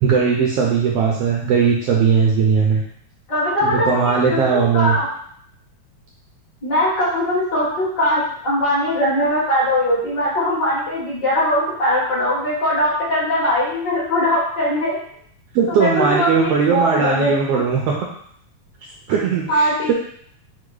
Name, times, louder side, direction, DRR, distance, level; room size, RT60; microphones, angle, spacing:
voice 1, 0.0-2.8 3.6-5.0 15.5-17.9 19.1-19.9, right 6 dB, 80° right, -2 dB, 1.4 m, -18 dB
voice 2, 3.3-5.1 6.6-15.0 15.7-17.4 19.5-19.9, left 1 dB, 45° left, -7 dB, 1.5 m, -20 dB
4.8 x 2.3 x 4.6 m, 0.65 s
omnidirectional pair, 3.3 m